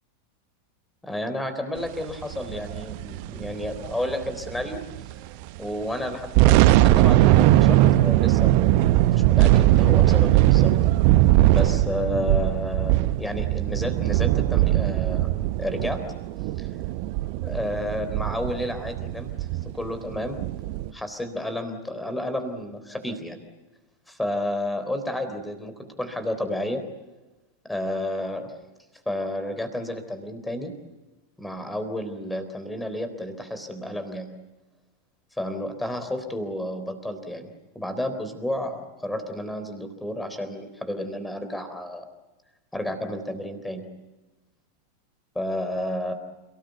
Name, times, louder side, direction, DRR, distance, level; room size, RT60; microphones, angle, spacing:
voice 1, 1.0-4.9 5.6-10.8 11.5-15.3 15.6-16.1 16.6-16.7 17.4-19.3 19.7-20.4 20.9-23.4 24.1-26.9 27.6-28.5 29.1-30.8 31.4-34.4 35.3-42.1 42.7-43.9 45.4-46.1, left 1 dB, 5° left, 9 dB, 3.8 m, -31 dB
sound 1, 2.3-5.1 5.4-5.6 6.1-20.9, right 15 dB, 45° right, 1.0 m, -20 dB
29.5 x 18.5 x 8.2 m, 1.1 s
figure-of-eight pair, 90°, 0 cm